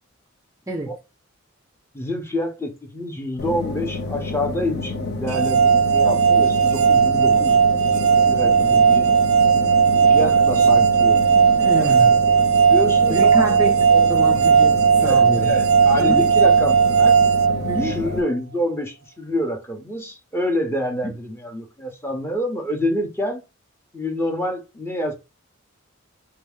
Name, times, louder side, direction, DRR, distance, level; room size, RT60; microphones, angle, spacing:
voice 1, 1.9-7.8 8.3-9.1 10.1-11.2 11.7-12.1 12.7-13.5 13.9-14.3 15.0-17.1 17.7-23.4 23.9-25.1, left 1 dB, 10° left, 1.0 m, -27 dB
sound 1, 3.4-18.2, left 3 dB, 55° left, 0.8 m, -29 dB
sound 2, 5.3-18.3, right 6 dB, 85° right, 0.3 m, -16 dB
voice 2, 11.6-12.2 13.1-15.5 16.0-16.3 17.7-18.0 21.0-21.1, right 1 dB, 15° right, 0.5 m, -27 dB
3.4 x 3.0 x 3.6 m
head